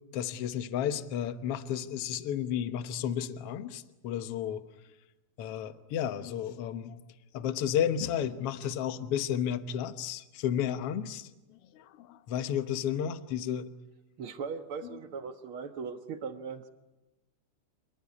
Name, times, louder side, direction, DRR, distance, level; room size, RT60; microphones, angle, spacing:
voice 1, 0.1-4.6 5.4-7.0 7.3-11.3 11.7-13.7, left 9 dB, 60° left, 11 dB, 1.7 m, -32 dB
voice 2, 14.2-16.7, right 5 dB, 55° right, 8 dB, 1.8 m, -39 dB
28.0 x 19.5 x 9.7 m, 1.1 s
omnidirectional pair, 3.6 m